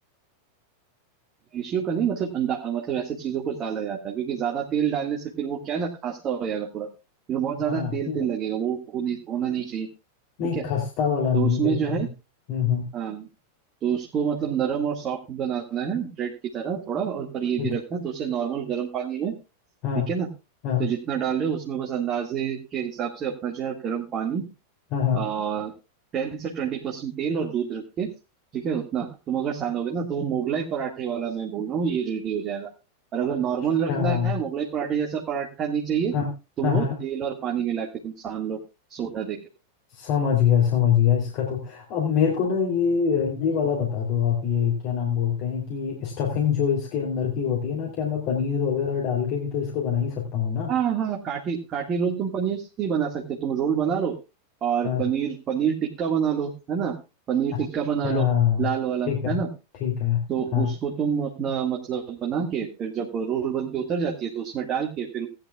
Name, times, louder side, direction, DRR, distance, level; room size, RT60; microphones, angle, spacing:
voice 1, 1.5-6.9 7.3-9.9 10.5-10.6 11.3-12.1 12.9-13.3 13.8-19.3 19.9-20.3 20.8-24.5 25.1-25.7 26.1-28.1 28.5-32.7 33.1-36.1 36.6-38.6 38.9-39.4 50.7-54.1 54.6-57.0 57.3-58.3 58.6-59.5 60.3-65.3, right 8 dB, 30° right, 0 dB, 1.9 m, -27 dB
voice 2, 7.6-8.3 10.4-12.1 12.5-12.9 17.6-17.7 19.8-20.1 20.6-20.9 24.9-25.2 33.9-34.3 36.1-36.3 36.6-37.0 39.9-50.7 54.8-55.0 58.0-58.7 59.1-59.4 59.8-60.2 60.5-60.7, left 8 dB, 45° left, -1 dB, 3.2 m, -24 dB
18.0 x 10.5 x 2.4 m, 0.27 s
figure-of-eight pair, 90°, 0 cm